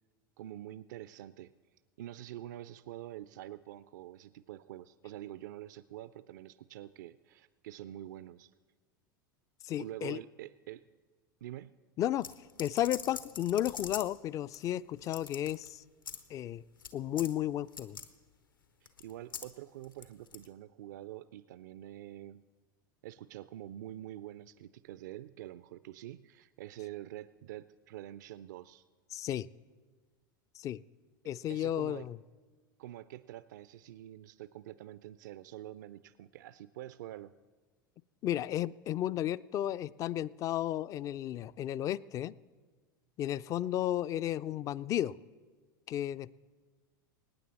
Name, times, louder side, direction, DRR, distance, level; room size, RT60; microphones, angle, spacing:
voice 1, 0.4-8.5 9.8-10.9 11.4-11.7 18.8-22.5 23.0-28.9 31.5-32.1 32.8-37.3, right 13 dB, 60° right, 16 dB, 0.4 m, -46 dB
voice 2, 9.6-10.2 12.0-12.3 12.6-15.8 16.3-16.6 16.9-18.0 29.1-29.5 30.6-30.8 31.3-32.2 38.2-42.4 43.2-45.2 45.9-46.3, left 12 dB, 30° left, 19 dB, 0.3 m, -33 dB
sound 1, 12.2-14.2 14.5-14.6 15.0-15.7 16.0-16.2 16.8-16.9 17.2-17.3 17.7-18.1 18.9-19.5 19.8-20.5, left 6 dB, 75° left, 1.2 m, -43 dB
25.5 x 9.6 x 4.2 m, 1.4 s
figure-of-eight pair, 85°, 11 cm